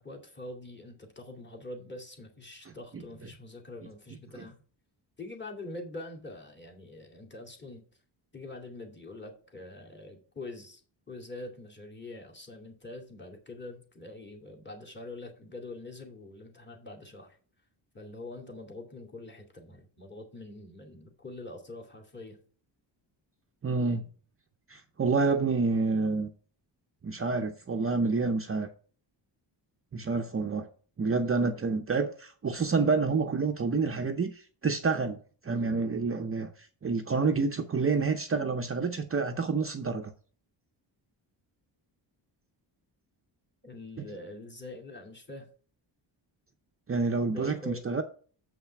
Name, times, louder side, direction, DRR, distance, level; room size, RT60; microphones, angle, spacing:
voice 1, 0.0-4.5 5.2-7.8 8.3-10.8 11.1-17.4 17.9-22.4 43.6-45.5 47.3-48.0, left 2 dB, 25° left, 2.3 m, -44 dB
voice 2, 23.6-24.0 24.7-26.3 27.0-28.7 29.9-30.7 31.0-35.2 35.4-36.5 36.8-40.1 44.0-44.1 46.9-48.0, right 4 dB, 30° right, 0.7 m, -28 dB
7.3 x 5.7 x 5.8 m
wide cardioid pair, 140°, 45 cm